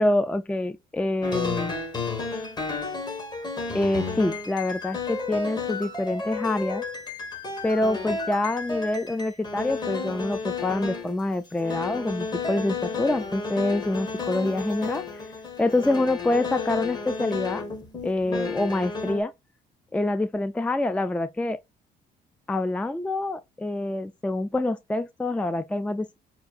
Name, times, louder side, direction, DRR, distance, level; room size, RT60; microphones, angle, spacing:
voice 1, 0.0-1.7 3.7-6.8 7.6-15.0 15.6-17.6 18.0-19.3 19.9-21.6 22.5-26.2, left 2 dB, 5° left, 0.3 m, -26 dB
sound 1, 1.2-11.2 11.6-19.2, left 4 dB, 25° left, 1.1 m, -32 dB
5.8 x 2.6 x 2.3 m
cardioid pair, 110°, 17 cm